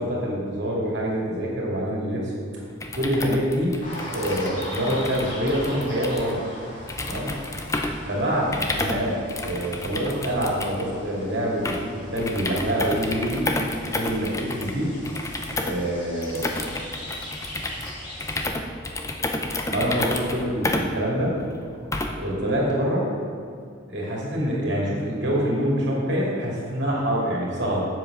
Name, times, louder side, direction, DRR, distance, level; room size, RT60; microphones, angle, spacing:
voice 1, 0.0-2.4 2.9-3.7 4.1-6.4 7.0-7.3 8.1-11.8 12.1-13.5 14.0-14.9 15.6-16.4 19.7-21.3 22.2-23.1 23.9-27.9, equal, 55° right, -4 dB, 2.5 m, -25 dB
sound 1, 2.7-22.3, left 2 dB, 15° left, 0.5 m, -31 dB
sound 2, 3.8-18.5, equal, 40° left, 2.5 m, -41 dB
7.7 x 7.5 x 6.1 m, 2.3 s
head